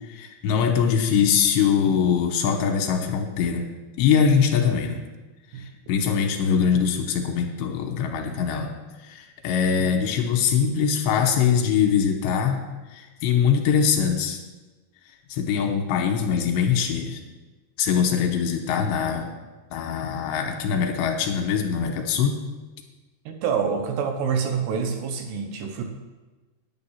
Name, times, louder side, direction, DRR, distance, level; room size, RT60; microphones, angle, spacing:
voice 1, 0.1-3.7 4.0-5.0 5.9-8.7 9.0-12.6 12.9-14.4 15.3-17.2 17.8-19.3 19.7-22.4, left 7 dB, 75° left, 3 dB, 3.1 m, -22 dB
voice 2, 23.3-25.8, right 6 dB, 75° right, 4 dB, 2.9 m, -26 dB
9.6 x 9.3 x 5.7 m, 1.2 s
omnidirectional pair, 5.2 m